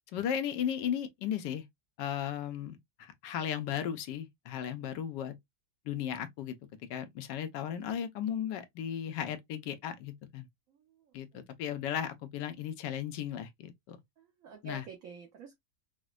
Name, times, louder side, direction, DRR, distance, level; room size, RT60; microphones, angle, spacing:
voice 1, 0.1-1.6 2.0-5.3 5.8-6.6 6.9-10.5 11.1-14.0 14.6-14.8, left 9 dB, 90° left, 1.3 m, -35 dB
voice 2, 10.7-11.4 14.2-15.6, right 4 dB, 60° right, 1.0 m, -49 dB
5.0 x 2.1 x 2.3 m
omnidirectional pair, 1.9 m